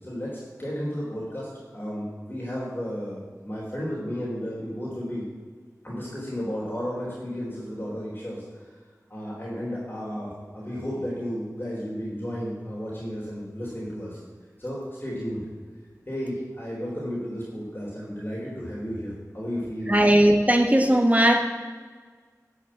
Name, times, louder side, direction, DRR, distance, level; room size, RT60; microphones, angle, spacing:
voice 1, 0.0-5.3 5.8-8.4 9.1-14.2 14.6-15.4 16.1-20.1, equal, 30° left, -6 dB, 3.6 m, -33 dB
voice 2, 19.9-21.4, right 1 dB, 25° right, 5 dB, 1.4 m, -18 dB
12.5 x 6.5 x 7.3 m, 1.5 s
wide cardioid pair, 50°, 6 cm